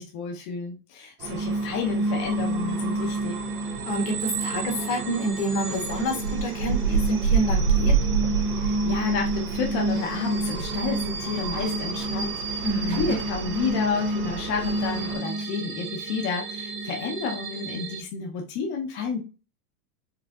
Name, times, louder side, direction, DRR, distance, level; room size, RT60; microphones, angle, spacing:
voice 1, 0.0-3.4 8.6-19.2, left 5 dB, 40° left, 0 dB, 0.8 m, -31 dB
sound 1, 1.2-18.0, right 2 dB, 30° right, 0.4 m, -30 dB
sound 2, 1.2-15.2, right 5 dB, 80° right, 1.1 m, -30 dB
voice 2, 3.9-7.9 12.6-13.2, equal, 75° left, 1 dB, 1.8 m, -28 dB
4.7 x 2.5 x 2.4 m, 0.32 s
supercardioid pair, 125°, 46 cm